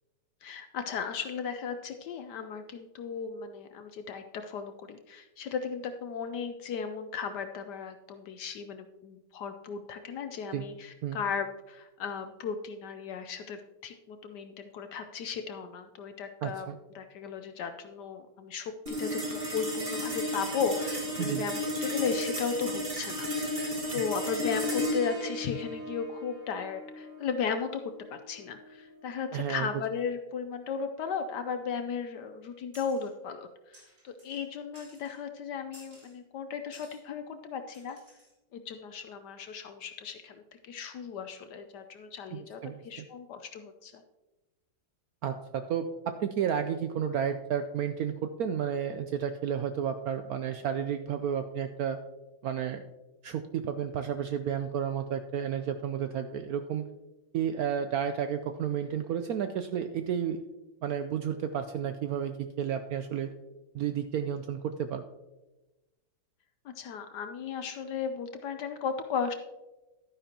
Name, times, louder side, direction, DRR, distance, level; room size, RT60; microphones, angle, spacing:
voice 1, 0.4-27.8 28.1-38.0 38.5-44.0 66.6-69.3, left 6 dB, 70° left, 8 dB, 1.1 m, -36 dB
voice 2, 16.4-16.8 21.2-21.4 29.3-29.7 42.3-42.8 45.2-52.0 52.4-52.8 53.2-56.8 57.3-60.4 60.8-63.3 63.7-65.0, right 8 dB, 80° right, 8 dB, 0.8 m, -32 dB
sound 1, 18.9-29.5, equal, 30° right, 1.8 m, -34 dB
sound 2, 32.7-33.1 33.7-34.4 34.7-35.2 35.7-36.2 36.7-37.0 37.7-38.3, right 1 dB, 50° right, 4.0 m, -55 dB
11.5 x 9.7 x 2.9 m, 1.1 s
omnidirectional pair, 2.1 m